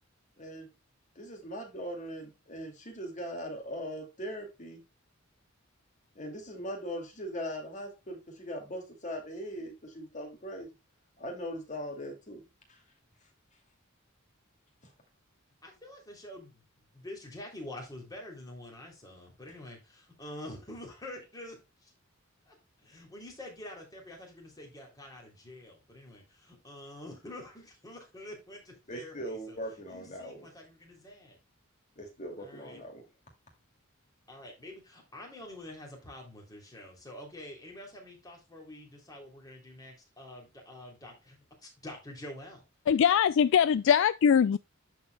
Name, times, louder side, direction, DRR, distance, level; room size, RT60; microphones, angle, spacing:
voice 1, 0.4-0.7 1.2-4.8 6.2-10.7 11.2-12.4 12.7-12.8 28.9-30.5 32.0-33.0, equal, 35° left, 2.4 m, -40 dB
voice 2, 15.6-21.9 22.5-22.6 22.8-29.6 29.9-31.4 32.4-32.8 34.3-42.6, left 1 dB, 20° left, 3.0 m, -47 dB
voice 3, 42.9-44.6, left 8 dB, 65° left, 0.3 m, -22 dB
13.5 x 4.6 x 2.2 m
head